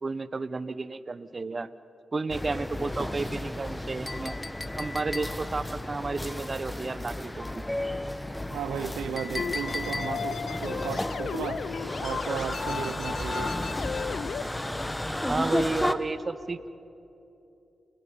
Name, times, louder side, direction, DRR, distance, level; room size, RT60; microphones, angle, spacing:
voice 1, 0.0-1.7 2.1-4.3 4.8-7.6 15.3-16.7, right 3 dB, 45° right, 15 dB, 0.9 m, -32 dB
sound 1, 2.3-15.9, left 1 dB, 10° left, 1.4 m, -33 dB
Chink clink, 4.1-5.6 9.2-10.4, left 3 dB, 35° left, 0.7 m, -37 dB
voice 2, 8.5-11.6 12.0-13.6, right 8 dB, 90° right, 13 dB, 0.7 m, -35 dB
sound 2, 9.4-14.4, left 6 dB, 70° left, 0.8 m, -35 dB
29.0 x 15.5 x 9.9 m, 2.8 s
supercardioid pair, 45°, 0 cm